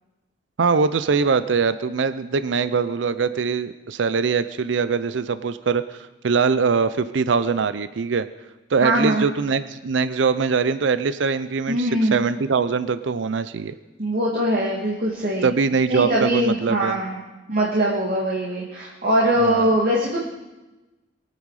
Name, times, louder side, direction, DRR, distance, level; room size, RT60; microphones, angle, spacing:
voice 1, 0.6-8.3 8.7-13.7 15.4-17.0 19.4-19.7, right 5 dB, 75° right, 13 dB, 0.5 m, -22 dB
voice 2, 8.8-9.2 11.7-12.2 14.0-15.5 15.9-17.2 17.5-20.2, right 1 dB, 55° right, -4 dB, 2.1 m, -22 dB
22.5 x 9.3 x 4.8 m, 1.1 s
head